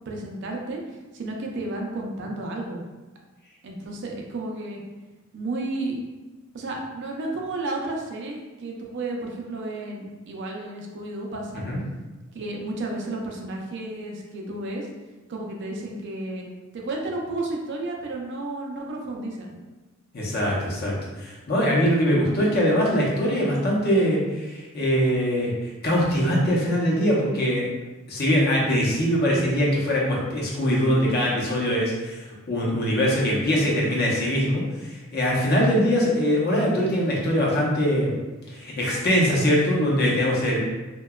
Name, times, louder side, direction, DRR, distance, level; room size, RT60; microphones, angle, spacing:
voice 1, 0.1-0.8 1.1-2.8 3.6-4.8 5.3-6.0 6.5-11.7 12.3-14.9 15.3-19.5 35.8-36.1, right 2 dB, 60° right, 0 dB, 0.4 m, -32 dB
voice 2, 20.1-27.7 28.1-38.2 38.5-40.6, equal, 50° left, -4 dB, 0.6 m, -22 dB
2.7 x 2.2 x 2.2 m, 1.2 s
head